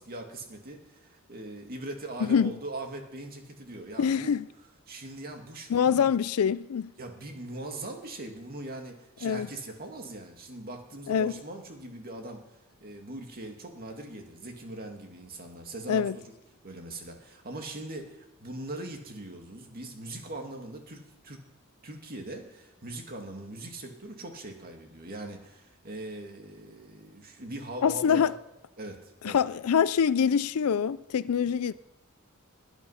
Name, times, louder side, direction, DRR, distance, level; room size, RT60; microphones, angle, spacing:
voice 1, 0.0-4.3 4.9-6.1 7.0-12.4 12.8-16.3 16.6-21.4 21.8-28.3 28.8-29.4, right 2 dB, 45° right, 2.2 m, -41 dB
voice 2, 2.2-2.5 4.0-4.4 5.7-6.9 9.2-9.5 11.1-11.3 15.9-16.2 27.8-28.4 29.2-31.7, left 7 dB, 80° left, 0.4 m, -25 dB
20.0 x 9.3 x 5.7 m
head